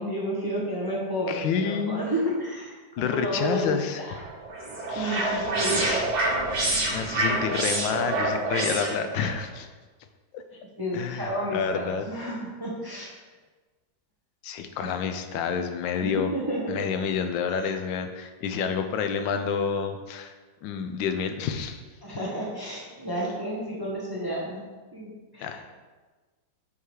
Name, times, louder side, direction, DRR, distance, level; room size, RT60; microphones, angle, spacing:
voice 1, 0.0-4.1 4.9-6.1 6.6-7.0 8.0-8.1 10.8-13.1 14.8-14.9 16.0-16.8 17.5-17.7 22.0-25.7, equal, 20° right, -4 dB, 0.7 m, -31 dB
voice 2, 1.3-2.1 3.0-4.0 4.9-5.5 6.9-9.7 10.3-10.4 10.9-12.0 14.4-16.3 16.7-20.3 20.6-21.8 25.4-25.7, left 6 dB, 85° left, 7 dB, 1.3 m, -29 dB
sound 1, 4.1-9.3, right 2 dB, 55° right, 1.8 m, -27 dB
5.7 x 4.8 x 4.7 m, 1.3 s
omnidirectional pair, 2.0 m